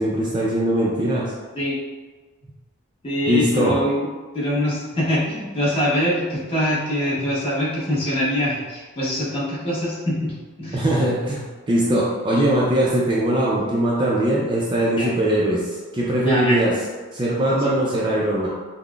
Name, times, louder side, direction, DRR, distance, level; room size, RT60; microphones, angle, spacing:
voice 1, 0.0-1.3 3.3-3.8 7.2-7.3 10.7-16.7 17.1-18.5, right 1 dB, 20° right, -5 dB, 0.4 m, -21 dB
voice 2, 3.0-4.1 4.3-10.3 10.6-10.8 15.0-15.1 16.2-16.6, left 1 dB, 25° left, -8 dB, 1.0 m, -23 dB
5.4 x 2.0 x 2.3 m, 1.3 s
head